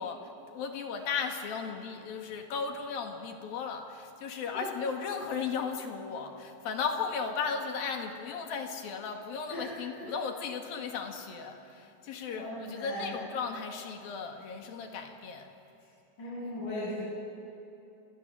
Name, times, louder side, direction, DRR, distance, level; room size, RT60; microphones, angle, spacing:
voice 1, 0.0-15.5, left 6 dB, 75° left, 4 dB, 3.7 m, -36 dB
voice 2, 12.3-13.2 16.2-17.0, left 1 dB, 55° left, -7 dB, 9.6 m, -37 dB
28.0 x 28.0 x 7.6 m, 2.8 s
omnidirectional pair, 4.3 m